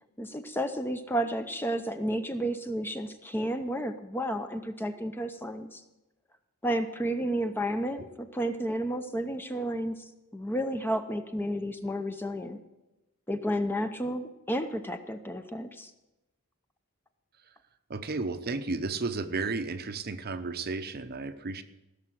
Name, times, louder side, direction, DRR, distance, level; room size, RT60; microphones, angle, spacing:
voice 1, 0.2-5.8 6.6-10.0 10.3-12.6 13.3-15.9, equal, 10° left, 8 dB, 0.7 m, -31 dB
voice 2, 17.9-21.6, right 3 dB, 45° right, 10 dB, 0.7 m, -33 dB
16.0 x 6.8 x 7.7 m, 1.0 s
head